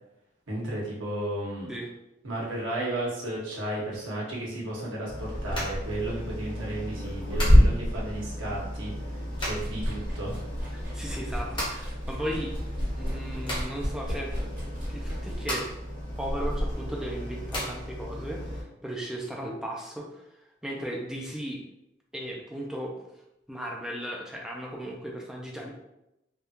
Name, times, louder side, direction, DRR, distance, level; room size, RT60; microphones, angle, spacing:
voice 1, 0.5-1.8 2.2-8.9 9.4-10.3, right 1 dB, 75° right, -4 dB, 1.1 m, -33 dB
sound 1, 5.1-18.6, equal, 25° left, 0.8 m, -36 dB
Liquid, 5.2-8.9 9.2-16.7, equal, 25° right, 1.4 m, -27 dB
voice 2, 10.7-12.5 12.9-14.3 14.9-15.7 16.2-20.2 20.6-21.6 22.1-22.9 23.5-25.7, equal, 5° right, -2 dB, 0.4 m, -36 dB
3.5 x 2.4 x 2.8 m, 0.89 s
head